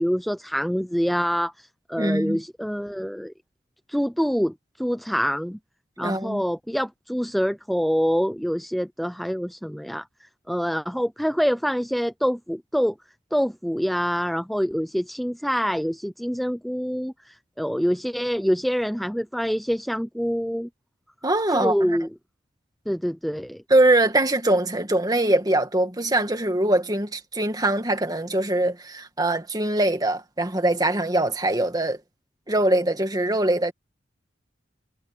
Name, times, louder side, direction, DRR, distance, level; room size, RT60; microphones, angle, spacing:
voice 1, 0.0-3.3 3.9-5.6 6.0-10.0 10.5-12.9 13.3-20.7 21.5-22.1 22.9-23.6, equal, ahead, 0.5 m, -26 dB
voice 2, 2.0-2.4 6.0-6.4 21.2-22.0 23.7-32.0 32.5-33.7, right 1 dB, 20° right, 2.0 m, -22 dB
head